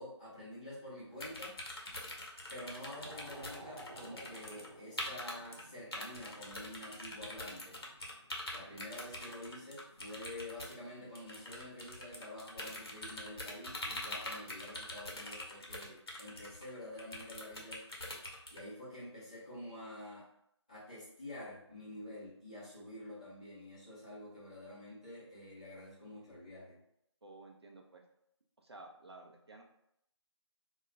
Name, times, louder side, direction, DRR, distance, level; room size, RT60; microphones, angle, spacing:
voice 1, 0.0-1.6 2.5-7.8 8.5-17.8 18.5-20.3 20.7-26.8, left 1 dB, 15° left, -10 dB, 0.5 m, -48 dB
sound 1, 1.2-4.7 5.0-5.6 5.9-18.6, left 1 dB, 55° left, 0.7 m, -44 dB
sound 2, 2.4-11.2, right 1 dB, 85° right, 0.8 m, -57 dB
voice 2, 27.2-28.0 28.6-29.6, right 2 dB, 60° right, 1 dB, 0.5 m, -53 dB
2.2 x 2.2 x 3.7 m, 0.75 s
figure-of-eight pair, 160°, 15 cm